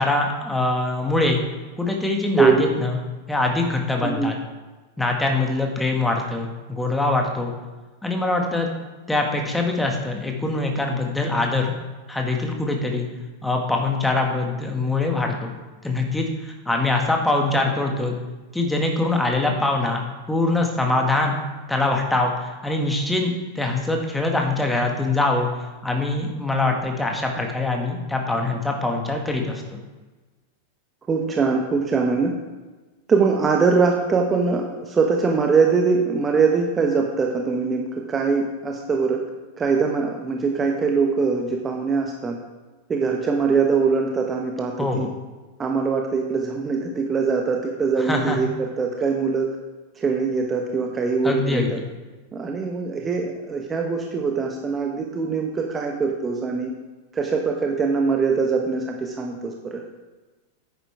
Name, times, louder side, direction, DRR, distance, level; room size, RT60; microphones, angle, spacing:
voice 1, 0.0-1.4 1.8-4.4 5.0-7.5 8.0-8.7 9.1-11.7 12.1-13.1 13.4-15.5 15.8-18.1 18.5-21.4 21.7-25.5 25.8-29.6 44.8-45.1 48.0-48.4 51.2-51.7, left 2 dB, 5° left, 2 dB, 1.6 m, -23 dB
voice 2, 2.3-2.7 4.0-4.3 31.1-32.3 33.1-39.2 39.6-42.4 42.9-45.1 45.6-49.6 50.0-51.8 52.3-56.7 57.1-59.8, right 5 dB, 20° right, 1 dB, 1.1 m, -22 dB
9.9 x 9.5 x 3.4 m, 1.2 s
figure-of-eight pair, 90°, 0 cm